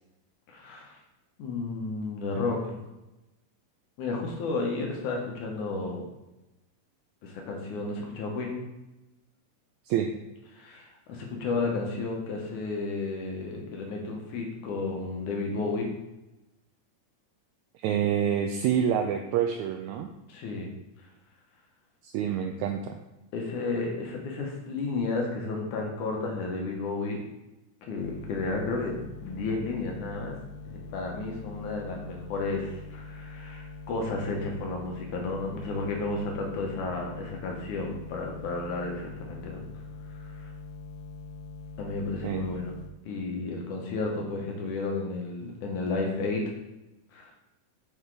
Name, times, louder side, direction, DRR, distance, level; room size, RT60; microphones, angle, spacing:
voice 1, 0.5-1.0 1.4-2.8 4.0-6.1 7.2-8.6 10.5-15.9 20.3-20.7 23.3-27.2 27.9-30.4 30.7-39.6 40.3-40.5 41.8-42.7 43.0-46.4 47.1-47.3, left 3 dB, 70° left, 0 dB, 2.5 m, -32 dB
voice 2, 17.7-20.1 22.0-23.0 42.2-42.4, right 8 dB, 85° right, 5 dB, 1.6 m, -27 dB
sound 1, 28.0-42.9, left 4 dB, 85° left, 2.3 m, -43 dB
8.1 x 5.0 x 4.7 m, 0.99 s
omnidirectional pair, 3.9 m